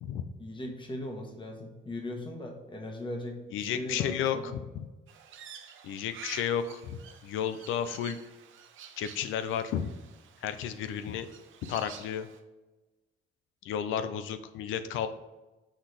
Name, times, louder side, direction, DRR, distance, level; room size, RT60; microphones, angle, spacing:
voice 1, 0.4-4.5, left 1 dB, 25° left, 2 dB, 1.4 m, -39 dB
voice 2, 3.5-4.9 5.8-8.2 9.0-9.9 10.4-11.3 11.7-12.3 13.6-15.1, left 8 dB, 90° left, 10 dB, 0.5 m, -32 dB
Crow, 5.1-12.4, right 8 dB, 80° right, 0.8 m, -50 dB
6.2 x 4.0 x 4.9 m, 1.1 s
cardioid pair, 90°, 20 cm